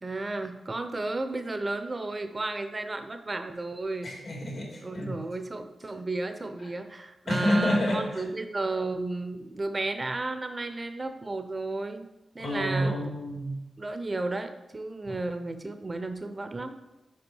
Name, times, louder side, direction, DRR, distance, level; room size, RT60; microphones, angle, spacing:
voice 1, 0.0-4.1 4.8-12.1 12.3-13.1 13.8-16.8, right 2 dB, 35° right, 8 dB, 0.7 m, -33 dB
voice 2, 4.0-5.2 7.3-8.2 12.4-13.5 15.0-15.1, equal, 65° left, -2 dB, 2.3 m, -28 dB
5.3 x 5.2 x 4.7 m, 0.95 s
cardioid pair, 50°, 0 cm